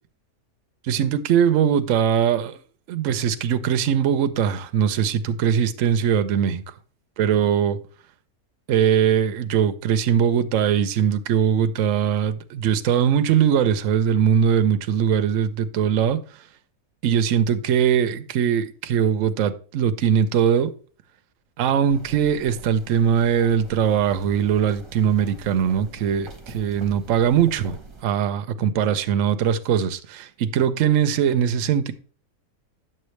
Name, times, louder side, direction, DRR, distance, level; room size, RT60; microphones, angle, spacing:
voice 1, 0.8-2.6 2.9-6.6 7.2-7.8 8.7-16.2 17.0-20.7 21.6-31.9, right 8 dB, 65° right, 0.9 m, -21 dB
sound 1, 21.9-28.0, right 3 dB, 20° right, 1.0 m, -44 dB
9.2 x 6.7 x 3.2 m
omnidirectional pair, 1.6 m